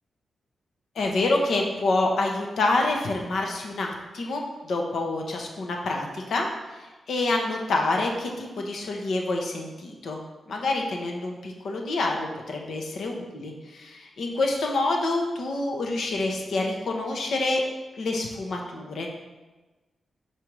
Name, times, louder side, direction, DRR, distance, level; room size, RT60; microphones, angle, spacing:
voice 1, 0.9-10.2 10.5-13.5 13.8-17.6 18.0-19.1, left 2 dB, 75° left, 1 dB, 1.0 m, -27 dB
5.1 x 4.4 x 4.7 m, 1.2 s
cardioid pair, 85°, 0 cm